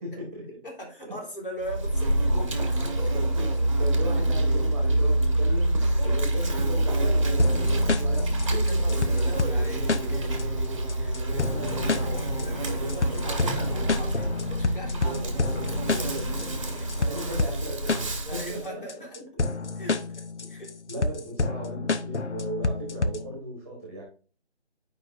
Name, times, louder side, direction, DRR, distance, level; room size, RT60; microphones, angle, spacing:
voice 1, 0.0-0.5 1.0-1.1 3.1-3.5 3.8-9.1 11.5-12.9 16.9-18.8 19.1-19.4 20.9-24.0, right 1 dB, 15° right, -2 dB, 1.5 m, -37 dB
voice 2, 0.6-3.3 6.0-6.2 8.6-11.6 12.4-17.1 18.3-19.2 19.8-20.8, equal, 50° left, -1 dB, 3.5 m, -40 dB
Insect, 1.6-18.7, right 1 dB, 30° right, 1.1 m, -26 dB
sound 1, 7.4-23.4, left 3 dB, 90° left, 0.8 m, -29 dB
11.0 x 5.1 x 2.6 m, 0.38 s
figure-of-eight pair, 165°, 34 cm